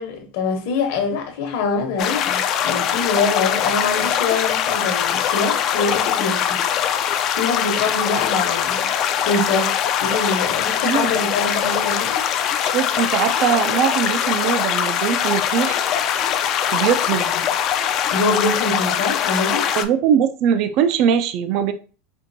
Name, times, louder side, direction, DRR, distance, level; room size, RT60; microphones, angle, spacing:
voice 1, 0.0-6.6 6.9-8.9 9.2-12.2 18.1-19.7, left 3 dB, 65° left, 1.0 m, -24 dB
sound 1, 2.0-19.8, left 9 dB, 35° left, 0.3 m, -22 dB
voice 2, 12.6-15.8 16.7-17.3 19.7-21.7, right 8 dB, 45° right, 0.3 m, -21 dB
4.4 x 2.5 x 2.6 m
supercardioid pair, 160°, 0 cm